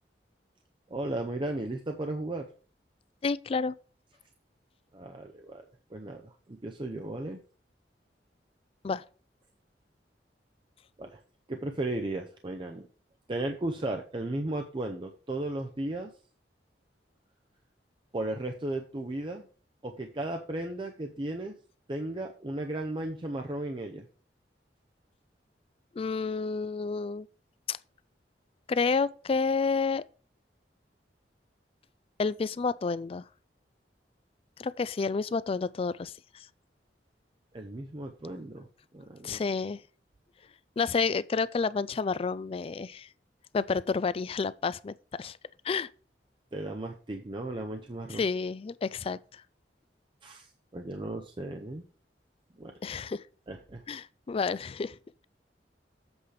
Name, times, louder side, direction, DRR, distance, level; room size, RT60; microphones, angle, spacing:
voice 1, 0.9-2.5 4.9-5.6 5.9-7.4 11.0-11.2 11.5-12.9 13.3-16.1 18.1-19.5 19.8-21.5 21.9-24.1 37.5-38.7 38.9-39.4 46.5-48.2 50.2-51.8 52.6-52.7 53.5-53.8, right 1 dB, 30° right, 0.6 m, -35 dB
voice 2, 3.2-3.7 8.8-9.0 26.0-27.3 27.7-27.8 28.7-30.0 32.2-33.2 34.6-36.5 39.2-39.8 40.8-43.1 43.5-45.4 45.6-45.9 48.1-49.4 52.8-53.2 53.9-55.0, left 4 dB, 30° left, 0.3 m, -30 dB
8.0 x 4.9 x 5.0 m
head